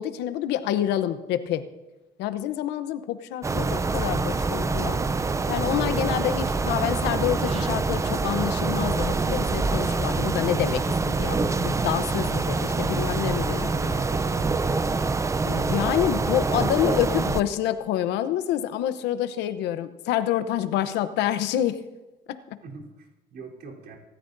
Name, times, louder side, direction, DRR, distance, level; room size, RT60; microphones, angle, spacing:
voice 1, 0.0-1.7 2.2-5.0 5.5-13.7 15.4-21.8 22.3-22.6, left 11 dB, 90° left, 12 dB, 0.8 m, -27 dB
sound 1, 3.4-17.4, right 3 dB, 20° right, 0.5 m, -25 dB
Human voice / Bird, 3.6-11.3, right 5 dB, 35° right, 0.9 m, -48 dB
voice 2, 13.7-15.1 22.6-24.0, right 3 dB, 70° right, -1 dB, 3.7 m, -40 dB
24.5 x 13.5 x 2.7 m, 1.1 s
cardioid pair, 110°, 17 cm